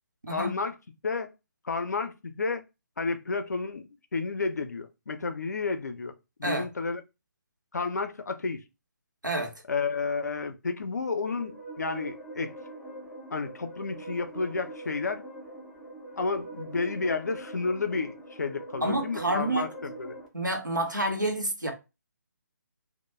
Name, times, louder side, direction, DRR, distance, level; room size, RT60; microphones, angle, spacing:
voice 1, 0.3-0.8 1.0-1.3 1.6-2.6 3.0-7.0 7.7-8.6 9.7-12.5 13.3-15.2 16.2-20.2, left 4 dB, 60° left, 0.4 m, -31 dB
sound 1, 10.9-20.3, right 2 dB, ahead, 0.3 m, -43 dB
voice 2, 18.8-19.7 20.3-21.7, right 1 dB, 90° right, 0.9 m, -28 dB
2.2 x 2.1 x 3.0 m
figure-of-eight pair, 145°, 10 cm